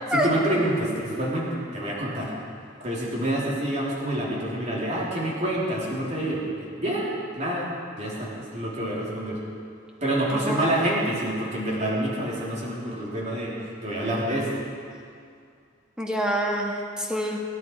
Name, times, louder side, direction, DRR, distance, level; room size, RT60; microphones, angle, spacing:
voice 1, 0.1-2.3 2.8-7.7 8.0-9.4 10.0-14.5, right 1 dB, 35° right, -5 dB, 3.4 m, -27 dB
voice 2, 10.3-10.7 16.0-17.4, equal, 5° right, -1 dB, 1.5 m, -27 dB
23.5 x 10.5 x 4.7 m, 2.3 s
head